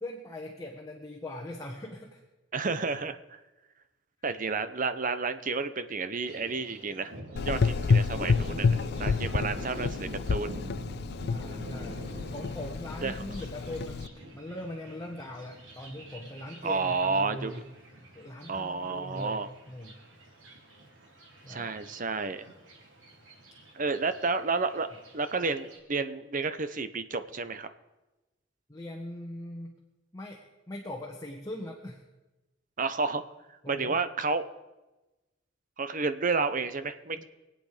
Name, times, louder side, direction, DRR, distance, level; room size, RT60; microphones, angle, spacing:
voice 1, 0.0-2.2 9.3-9.4 11.3-12.1 12.3-17.6 18.1-20.0 21.4-21.7 28.7-29.8 30.1-30.4 30.7-32.0 33.6-34.0 37.2-37.3, left 1 dB, 20° left, 0 dB, 1.4 m, -41 dB
voice 2, 2.5-3.2 4.2-7.1 7.4-10.6 13.0-13.1 16.6-17.5 18.5-19.5 21.5-22.5 23.7-24.9 25.1-27.7 32.8-33.2 33.7-34.5 35.8-37.2, right 4 dB, 45° right, 11 dB, 0.8 m, -31 dB
Thunder, 6.2-25.8, right 1 dB, 85° right, 3.2 m, -45 dB
Gurgling / Engine, 7.4-14.1, left 5 dB, 55° left, 0.4 m, -29 dB
24.0 x 8.9 x 5.0 m, 1.1 s
head